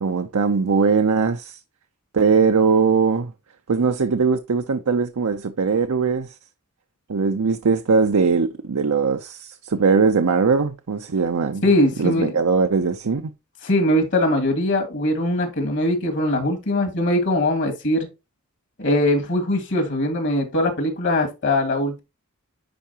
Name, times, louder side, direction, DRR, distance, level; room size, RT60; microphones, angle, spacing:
voice 1, 0.0-1.6 2.1-3.3 3.7-6.3 7.1-11.6 12.0-13.3, right 5 dB, 70° right, 0.6 m, -20 dB
voice 2, 11.6-12.3 13.6-18.1 18.8-22.0, left 1 dB, 55° left, 2.1 m, -21 dB
10.5 x 4.6 x 2.9 m
head